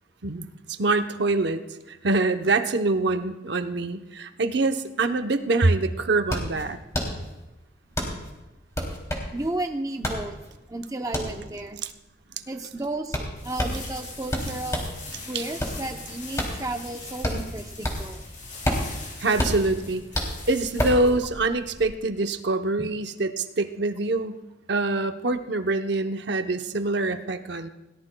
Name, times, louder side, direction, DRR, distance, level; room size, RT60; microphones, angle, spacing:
voice 1, 0.2-6.8 11.8-11.9 12.4-12.5 15.3-15.4 19.2-20.0 20.5-24.4 24.7-27.7, right 2 dB, 60° right, 7 dB, 0.8 m, -25 dB
sound 1, 5.9-15.0 15.4-18.2 18.5-21.1, equal, 15° left, 2.8 m, -30 dB
voice 2, 9.3-10.4 10.7-11.8 12.5-14.9 15.3-18.2 22.8-22.9, right 2 dB, 20° right, 5 dB, 0.6 m, -33 dB
sound 2, 13.4-21.8, left 3 dB, 40° left, 5.8 m, -41 dB
21.0 x 18.0 x 2.2 m, 1.0 s
head